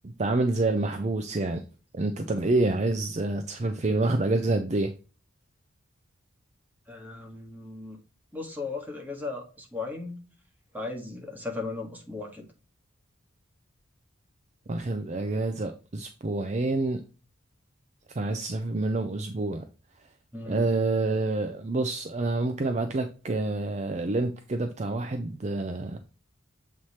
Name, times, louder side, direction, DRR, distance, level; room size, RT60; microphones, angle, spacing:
voice 1, 0.2-1.6 1.9-4.9 14.7-17.0 18.1-19.7 20.5-26.0, right 2 dB, 35° right, 0.5 m, -27 dB
voice 2, 6.9-8.0 8.3-10.3 10.7-12.4 20.3-20.6, left 3 dB, 10° right, 1.6 m, -36 dB
7.5 x 3.2 x 4.2 m
head